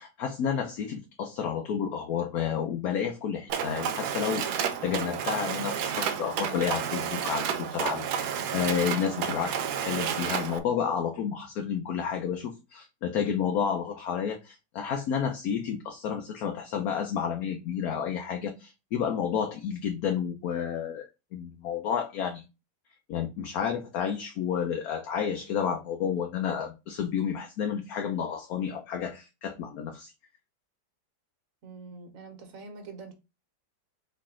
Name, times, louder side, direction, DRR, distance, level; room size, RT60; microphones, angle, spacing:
voice 1, 0.0-22.4 23.1-30.1, left 7 dB, 65° left, 1.1 m, -31 dB
Mechanisms, 3.5-10.6, right 8 dB, 75° right, 1.1 m, -31 dB
voice 2, 31.6-33.1, right 4 dB, 55° right, 1.3 m, -44 dB
4.4 x 3.2 x 3.7 m
omnidirectional pair, 1.8 m